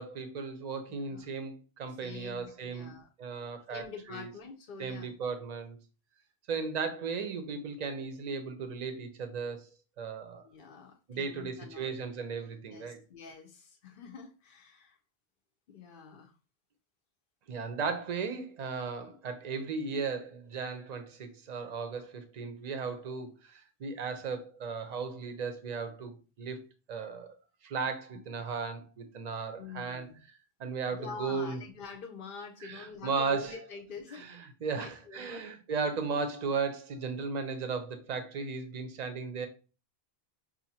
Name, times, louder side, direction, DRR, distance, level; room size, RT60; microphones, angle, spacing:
voice 1, 0.0-4.3 4.8-5.8 6.5-9.7 10.0-10.4 11.1-13.0 17.5-26.6 26.9-27.4 27.6-30.1 30.6-31.6 32.6-33.6 34.1-39.5, right 5 dB, 50° right, 0.7 m, -36 dB
voice 2, 0.9-1.3 1.9-3.1 3.7-5.1 10.4-12.0 12.7-15.0 15.7-16.4 28.3-28.4 29.5-30.2 31.0-34.3 34.8-35.4, left 5 dB, 60° left, 0.7 m, -46 dB
5.6 x 2.5 x 2.7 m
omnidirectional pair, 1.0 m